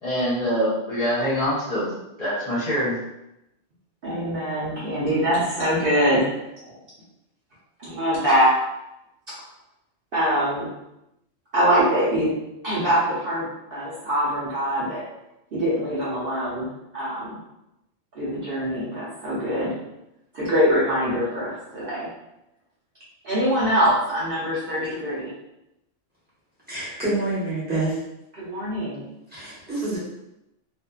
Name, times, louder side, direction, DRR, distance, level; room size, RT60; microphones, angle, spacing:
voice 1, 0.0-1.9 2.2-3.0, equal, 35° left, -11 dB, 0.9 m, -24 dB
voice 2, 4.0-6.3 7.8-8.6 10.1-10.7 11.5-12.3 12.6-15.0 15.5-17.4 18.1-19.8 20.3-22.1 23.2-25.3 28.4-29.1, equal, 55° right, -9 dB, 0.8 m, -23 dB
voice 3, 26.7-28.0 29.3-30.0, right 2 dB, 10° right, -11 dB, 1.0 m, -27 dB
2.5 x 2.5 x 2.3 m, 0.88 s
omnidirectional pair, 1.3 m